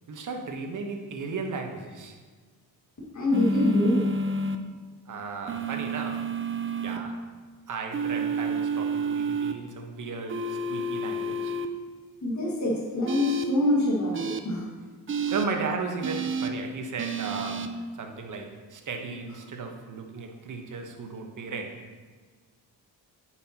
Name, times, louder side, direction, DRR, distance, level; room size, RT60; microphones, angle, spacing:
voice 1, 0.1-2.2 5.1-6.3 6.8-7.2 7.7-11.5 15.3-21.8, right 4 dB, 50° right, 4 dB, 1.1 m, -35 dB
voice 2, 3.1-4.1 12.2-14.6, left 1 dB, 45° left, -4 dB, 1.9 m, -25 dB
sound 1, 3.3-4.6 5.5-7.0 7.9-9.5 10.3-11.7 13.1-13.4 14.1-14.4 15.1-15.4 16.0-16.5 17.0-17.7, right 3 dB, 30° right, 0.5 m, -29 dB
8.6 x 5.8 x 2.8 m, 1.5 s
cardioid pair, 90°, 40 cm